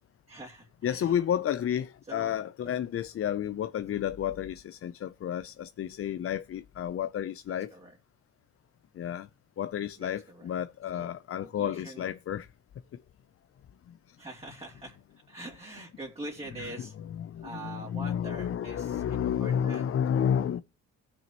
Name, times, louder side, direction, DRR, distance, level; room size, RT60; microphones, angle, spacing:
voice 1, 0.3-1.1 2.1-2.3 3.9-4.0 7.5-8.0 10.0-10.5 10.9-11.1 11.4-12.1 14.2-15.0 15.3-16.9 17.4-20.5, right 2 dB, 20° right, 2.6 m, -44 dB
voice 2, 0.8-7.7 9.0-9.3 9.6-12.5 17.2-20.6, left 9 dB, 50° left, 0.6 m, -31 dB
17.5 x 6.3 x 2.9 m
cardioid pair, 90°, 30 cm